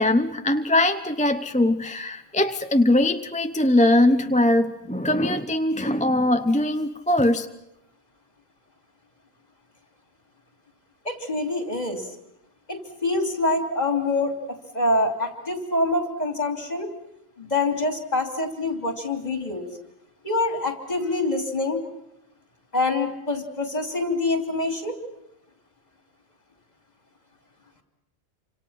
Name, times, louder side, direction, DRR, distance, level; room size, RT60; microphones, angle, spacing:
voice 1, 0.0-7.5, left 1 dB, 5° left, 8 dB, 0.7 m, -21 dB
voice 2, 11.0-12.1 12.7-14.4 14.7-16.9 17.4-19.7 20.2-21.8 22.7-25.0, left 2 dB, 30° left, 5 dB, 3.3 m, -25 dB
28.0 x 26.0 x 5.8 m, 0.86 s
omnidirectional pair, 1.4 m